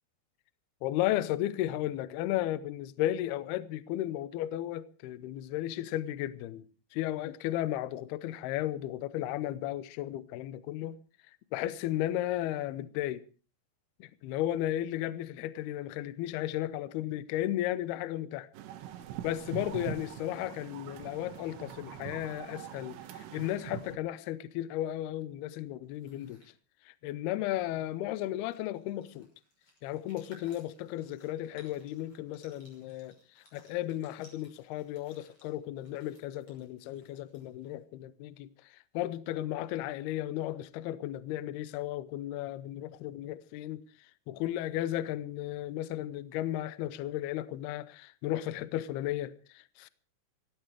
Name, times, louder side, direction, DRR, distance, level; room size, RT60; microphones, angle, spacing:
voice 1, 0.8-6.7 6.9-11.0 11.5-13.2 14.0-18.5 19.2-26.4 26.9-29.3 29.8-33.2 33.5-38.5 38.9-43.8 44.3-49.9, left 13 dB, 90° left, 2.2 m, -34 dB
sound 1, 18.5-24.0, right 11 dB, 85° right, 3.9 m, -43 dB
sound 2, 25.8-26.5 28.0-28.1 28.3-37.8, left 1 dB, 30° left, 6.6 m, -62 dB
18.0 x 16.0 x 4.8 m
omnidirectional pair, 5.8 m